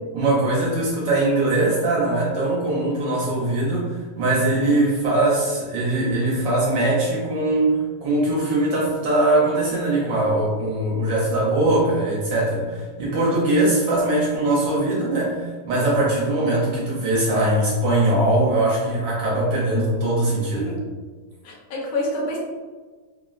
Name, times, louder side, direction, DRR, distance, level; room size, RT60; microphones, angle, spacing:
voice 1, 0.1-20.7, right 2 dB, 70° right, -5 dB, 1.2 m, -21 dB
voice 2, 21.4-22.4, left 1 dB, 75° left, -2 dB, 1.4 m, -27 dB
3.5 x 2.0 x 2.3 m, 1.4 s
omnidirectional pair, 2.3 m